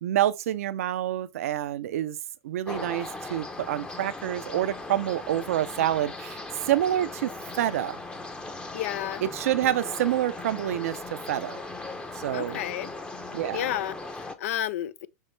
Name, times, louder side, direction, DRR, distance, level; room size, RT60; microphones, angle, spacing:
voice 1, 0.0-2.2 2.4-6.4 6.7-8.0 9.2-11.6 12.2-12.6 13.3-13.6, right 12 dB, 75° right, 0.5 m, -27 dB
sound 1, 2.7-14.4, left 2 dB, 10° left, 0.7 m, -38 dB
voice 2, 8.7-9.2 12.3-12.9 13.5-15.1, left 12 dB, 70° left, 0.4 m, -31 dB
5.5 x 2.9 x 3.3 m
hypercardioid pair, 115°, 8 cm